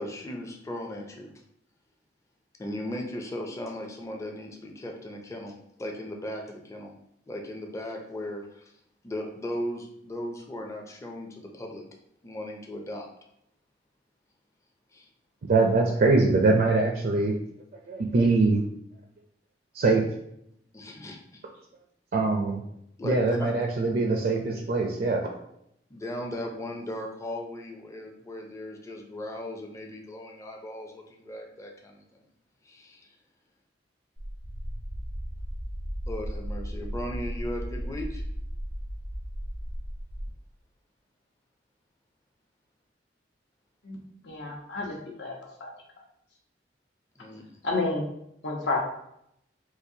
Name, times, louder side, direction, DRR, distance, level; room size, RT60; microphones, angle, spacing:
voice 1, 0.0-1.3 2.6-6.9 7.3-8.7 9.0-11.8 12.2-13.1 14.9-15.1 20.7-21.4 23.0-23.5 25.9-32.0 32.6-33.1 36.1-38.2 47.2-47.4, left 1 dB, 15° left, 1 dB, 0.4 m, -37 dB
voice 2, 15.4-17.3 17.9-18.6 19.7-20.0 22.1-22.6 23.0-25.2, right 3 dB, 55° right, 1 dB, 0.4 m, -23 dB
sound 1, 34.2-40.3, equal, 85° right, 0.7 m, -35 dB
voice 3, 44.2-45.3 45.6-45.7 47.6-48.1 48.4-48.8, left 3 dB, 80° left, -2 dB, 0.9 m, -30 dB
3.9 x 2.4 x 2.7 m, 0.75 s
head